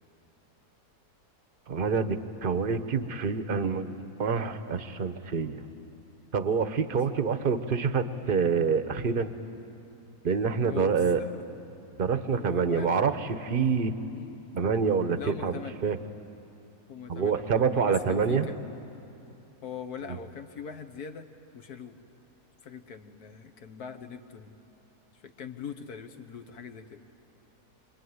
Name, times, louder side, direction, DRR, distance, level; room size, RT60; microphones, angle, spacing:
voice 1, 1.7-5.6 6.3-9.3 10.2-11.2 12.0-13.9 14.5-16.0 17.1-18.5, right 5 dB, 40° right, 10 dB, 0.9 m, -27 dB
voice 2, 6.9-7.2 10.7-11.3 12.3-13.1 14.1-14.4 15.2-15.8 16.9-18.5 19.6-21.3 21.5-22.0 22.6-24.5 25.1-27.0, left 6 dB, 70° left, 7 dB, 1.7 m, -42 dB
27.0 x 22.5 x 9.5 m, 2.8 s
omnidirectional pair, 1.7 m